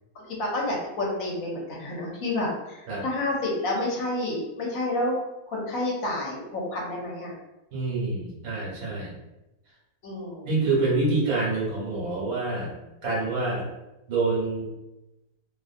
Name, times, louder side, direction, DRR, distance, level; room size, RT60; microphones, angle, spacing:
voice 1, 0.1-5.2 5.5-7.3 10.0-10.5, left 1 dB, 70° left, -2 dB, 1.0 m, -29 dB
voice 2, 7.7-9.2 10.4-12.8 13.0-13.7 14.1-14.7, right 3 dB, 70° right, -5 dB, 1.3 m, -26 dB
2.6 x 2.5 x 2.4 m, 0.99 s
omnidirectional pair, 1.6 m